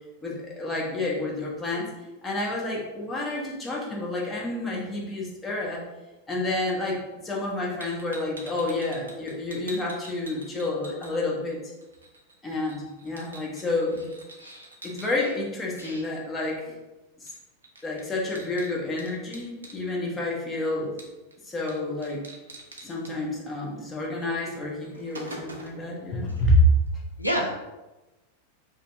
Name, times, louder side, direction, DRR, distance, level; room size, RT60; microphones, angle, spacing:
voice 1, 0.2-1.9 2.2-5.9 6.3-11.6 12.4-14.0 14.8-16.7 17.2-17.3 17.8-21.0 21.4-22.3 22.8-26.6, left 2 dB, 15° left, -3 dB, 0.8 m, -29 dB
sound 1, 7.8-11.5 11.8-15.1 17.3-17.4 17.6-19.8 21.0-21.3 21.7-21.8 22.0-23.1 24.2-24.3 24.7-25.9, right 2 dB, 75° right, 0.5 m, -45 dB
voice 2, 27.2-27.6, equal, 90° left, -1 dB, 0.5 m, -29 dB
2.7 x 2.5 x 3.3 m, 1.1 s
figure-of-eight pair, 90°, 0 cm